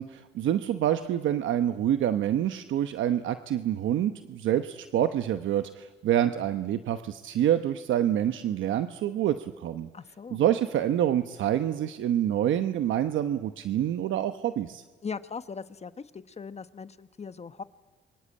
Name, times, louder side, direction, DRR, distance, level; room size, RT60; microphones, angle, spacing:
voice 1, 0.0-9.9 10.3-14.8, right 11 dB, 75° right, 9 dB, 1.0 m, -27 dB
voice 2, 9.9-10.4 15.0-17.6, left 5 dB, 35° left, 12 dB, 1.2 m, -39 dB
27.5 x 24.0 x 8.8 m, 1.3 s
cardioid pair, 90°, 20 cm